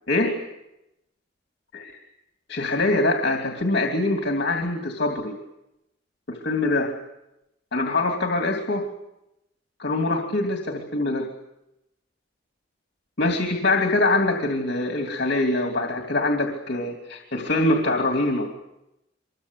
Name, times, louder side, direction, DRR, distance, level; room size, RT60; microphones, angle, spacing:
voice 1, 2.5-5.4 6.3-6.9 7.7-8.9 9.8-11.3 13.2-18.5, left 2 dB, 60° left, 3 dB, 2.7 m, -24 dB
25.0 x 22.5 x 8.3 m, 0.90 s
head